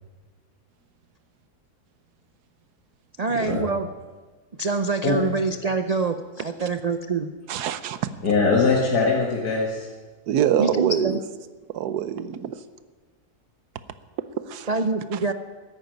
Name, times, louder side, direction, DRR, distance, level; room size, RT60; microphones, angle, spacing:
voice 1, 3.2-3.9 4.6-7.3 10.6-11.2 14.7-15.3, right 3 dB, 60° right, 9 dB, 0.4 m, -25 dB
voice 2, 7.5-8.0 10.3-11.2 11.7-12.6 14.5-14.7 15.1-15.2, right 9 dB, 90° right, 13 dB, 1.3 m, -25 dB
voice 3, 8.2-9.9, left 4 dB, 85° left, -3 dB, 2.4 m, -21 dB
14.0 x 10.0 x 9.3 m, 1.4 s
omnidirectional pair, 1.6 m